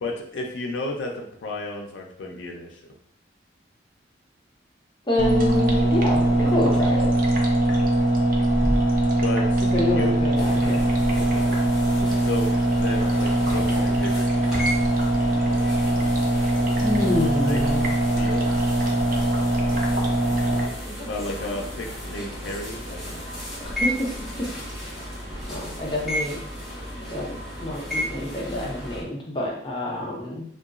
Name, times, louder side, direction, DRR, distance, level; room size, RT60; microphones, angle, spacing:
voice 1, 0.0-2.8 7.6-8.0 9.2-10.2 12.2-12.5 12.7-14.7 17.4-17.6 18.1-18.5 21.0-23.2, left 2 dB, 85° left, 1 dB, 0.4 m, -33 dB
voice 2, 5.1-7.1 9.6-10.8 11.1-11.6 12.0-12.2 16.8-17.9 23.6-24.1 25.5-26.4 27.1-27.3 27.6-30.4, left 2 dB, 25° left, -2 dB, 0.6 m, -27 dB
sound 1, 5.2-20.6, right 1 dB, 50° right, 0.4 m, -21 dB
sound 2, 10.4-29.0, equal, ahead, 0.8 m, -34 dB
2.8 x 2.3 x 2.4 m, 0.65 s
head